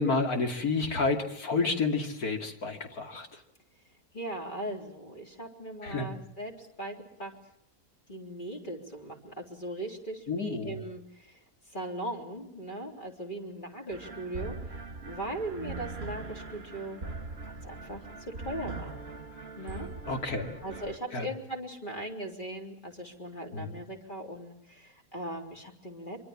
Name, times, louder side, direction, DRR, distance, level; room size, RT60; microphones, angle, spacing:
voice 1, 0.0-3.3 5.8-6.2 10.3-10.8 20.1-20.5 21.1-21.3 23.5-23.8, left 3 dB, 80° left, 4 dB, 3.1 m, -30 dB
voice 2, 4.1-7.3 8.1-11.3 11.7-14.8 15.1-17.0 17.5-18.0 18.4-19.0 19.6-19.9 20.6-26.2, right 1 dB, 30° left, 2 dB, 3.9 m, -39 dB
sound 1, 13.9-21.0, right 3 dB, 40° right, 2.0 m, -41 dB
25.0 x 24.0 x 7.4 m, 0.72 s
omnidirectional pair, 1.6 m